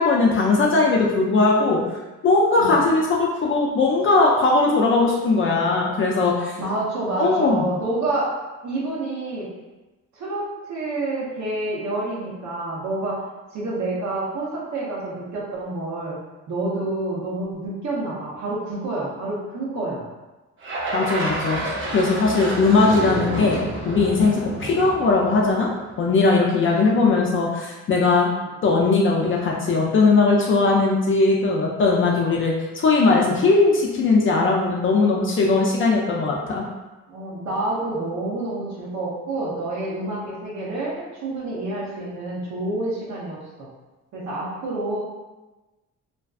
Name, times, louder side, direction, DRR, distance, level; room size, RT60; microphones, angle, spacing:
voice 1, 0.0-1.8 2.2-6.5 7.2-7.6 20.9-23.6 23.9-25.7 26.0-28.3 28.6-36.6, left 3 dB, 45° left, -2 dB, 0.4 m, -19 dB
voice 2, 6.6-8.3 8.6-9.5 10.1-13.2 13.5-16.2 16.5-20.0 26.6-27.0 28.3-28.4 37.1-43.7 44.1-45.0, right 2 dB, 65° right, -6 dB, 0.8 m, -28 dB
sound 1, 20.6-25.9, right 1 dB, 40° right, 0.6 m, -29 dB
2.5 x 2.2 x 2.3 m, 1.1 s
cardioid pair, 90°, 30 cm